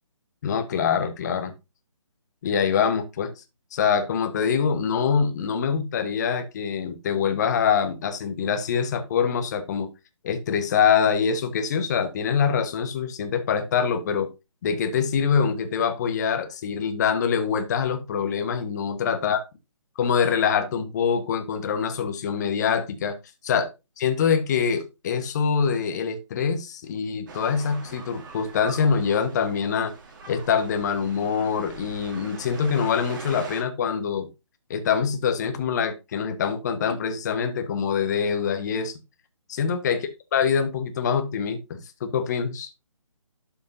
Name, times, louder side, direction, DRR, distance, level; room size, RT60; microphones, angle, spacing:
voice 1, 0.4-1.5 2.4-3.4 3.7-9.9 10.2-14.3 14.6-19.4 20.0-23.2 23.4-23.7 24.0-29.9 30.3-34.3 34.7-39.0 39.6-40.0 40.3-42.7, left 6 dB, 30° left, 1.3 m, -24 dB
sound 1, 27.3-33.6, right 3 dB, 35° right, 2.0 m, -42 dB
12.0 x 5.3 x 2.7 m
figure-of-eight pair, 145°, 17 cm